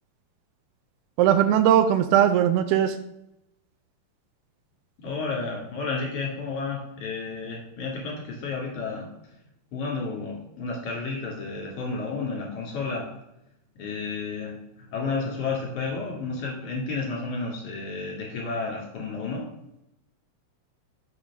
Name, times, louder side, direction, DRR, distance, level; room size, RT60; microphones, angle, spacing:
voice 1, 1.2-3.0, right 10 dB, 80° right, 10 dB, 2.4 m, -19 dB
voice 2, 5.0-9.1 9.7-13.1 13.8-19.5, left 4 dB, 50° left, -2 dB, 3.4 m, -31 dB
6.9 x 5.0 x 6.0 m, 0.84 s
omnidirectional pair, 4.7 m